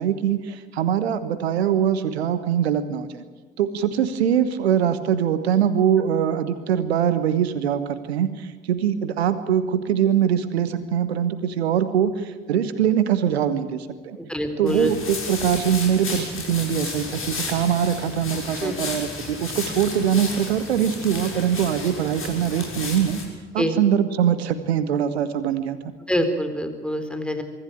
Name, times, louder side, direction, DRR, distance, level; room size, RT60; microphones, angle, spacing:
voice 1, 0.0-3.2 3.6-14.2 14.6-23.2 23.5-25.8, right 9 dB, 80° right, 13 dB, 1.2 m, -23 dB
voice 2, 14.2-14.9 18.6-18.7 23.6-23.8 26.1-27.4, equal, 5° left, 7 dB, 4.2 m, -25 dB
sound 1, 14.7-23.2, left 3 dB, 40° left, 6.8 m, -33 dB
24.5 x 14.5 x 9.2 m, 1.4 s
figure-of-eight pair, 40°, 32 cm